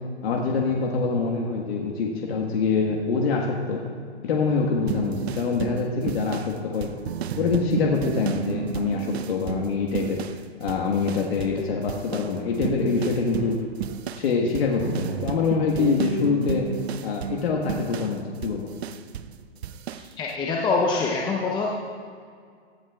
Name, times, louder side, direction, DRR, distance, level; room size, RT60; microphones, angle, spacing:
voice 1, 0.2-3.8 4.2-6.9 7.4-10.2 10.6-13.5 14.1-16.7 17.0-18.7, left 4 dB, 60° left, 0 dB, 1.5 m, -25 dB
sound 1, 4.9-10.4 10.7-11.6 11.9-19.3 19.6-20.1, right 9 dB, 65° right, 0.6 m, -32 dB
voice 2, 19.9-21.7, left 4 dB, 15° left, -2 dB, 0.7 m, -25 dB
17.5 x 13.5 x 2.3 m, 2.1 s
hypercardioid pair, 135°, 34 cm